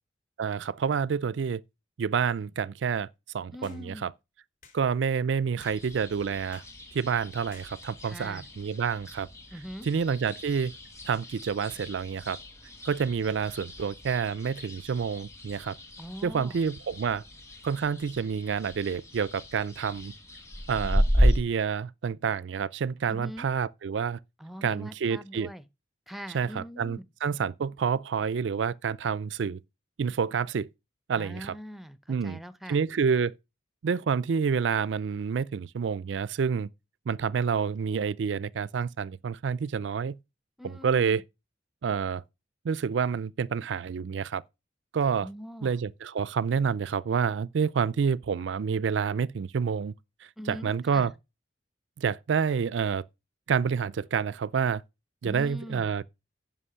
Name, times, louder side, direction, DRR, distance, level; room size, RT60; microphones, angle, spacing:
voice 1, 0.4-1.6 2.0-3.1 3.3-4.1 4.7-6.6 6.9-9.3 9.8-10.7 11.0-12.4 12.8-15.8 16.2-17.2 17.6-20.1 20.7-24.2 24.6-25.5 26.3-29.6 30.0-30.7 31.1-31.5 32.1-32.4 32.7-33.3 33.8-36.7 37.1-40.2 40.6-41.2 41.8-42.2 42.6-44.4 44.9-45.3 45.6-49.9 50.5-51.1 52.0-53.0 53.5-54.8 55.2-56.0, right 6 dB, 75° right, 0.4 m, -28 dB
voice 2, 3.5-4.1 8.0-8.5 9.5-9.9 16.0-16.6 23.1-23.5 24.4-25.6 26.1-27.0 31.1-32.8 40.6-41.2 45.2-45.8 50.4-51.1 55.2-55.9, equal, ahead, 0.6 m, -42 dB
sound 1, 3.6-3.9 4.6-4.8 5.6-5.8 6.5-6.8 7.5-7.7, left 5 dB, 45° left, 2.8 m, -53 dB
sound 2, 5.6-21.4, equal, 15° left, 1.7 m, -33 dB
9.9 x 5.6 x 5.6 m
head